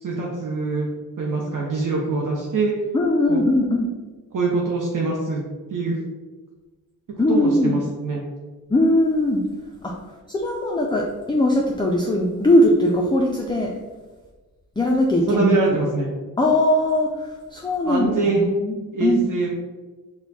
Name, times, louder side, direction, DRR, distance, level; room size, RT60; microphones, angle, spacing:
voice 1, 0.0-0.9 1.2-2.7 3.3-3.4 4.3-5.4 5.7-6.0 7.3-8.2 15.3-16.1 17.8-18.5 18.9-19.5, right 3 dB, 60° right, -2 dB, 0.7 m, -23 dB
voice 2, 2.9-3.9 7.2-7.7 8.7-9.4 9.8-9.9 10.3-13.7 14.8-15.5 16.4-19.2, left 1 dB, 15° left, -1 dB, 0.4 m, -20 dB
4.3 x 2.3 x 4.0 m, 1.3 s
wide cardioid pair, 90°, 36 cm